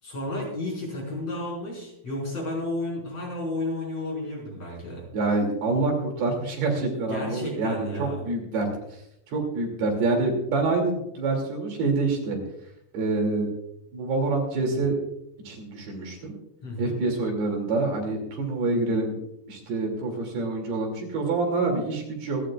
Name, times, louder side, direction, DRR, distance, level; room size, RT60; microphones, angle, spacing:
voice 1, 0.0-5.0 7.1-8.2 16.6-17.0, left 1 dB, 35° left, -3 dB, 6.2 m, -32 dB
voice 2, 5.1-8.7 9.3-12.4 12.9-13.5 13.9-15.0 15.5-16.3 16.8-19.1 19.5-22.4, right 3 dB, 65° right, 1 dB, 4.6 m, -26 dB
27.5 x 11.5 x 2.4 m, 0.79 s
omnidirectional pair, 5.0 m